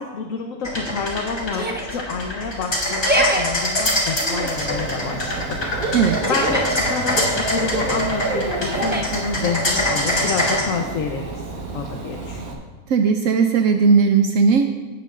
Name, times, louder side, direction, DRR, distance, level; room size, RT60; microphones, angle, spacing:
voice 1, 0.0-6.0 6.3-12.4, left 5 dB, 70° left, 2 dB, 1.2 m, -28 dB
sound 1, 0.6-10.6, left 1 dB, 50° left, 2.6 m, -24 dB
Yell, 1.5-2.0 2.9-3.4 4.2-4.7 5.9-6.8 8.6-9.2, right 1 dB, 15° right, 0.4 m, -25 dB
Dog / Bird, 4.5-12.5, right 2 dB, 90° right, 1.8 m, -29 dB
voice 2, 12.9-14.6, right 5 dB, 70° right, 5 dB, 0.9 m, -16 dB
17.0 x 8.3 x 2.5 m, 1.3 s
omnidirectional pair, 1.5 m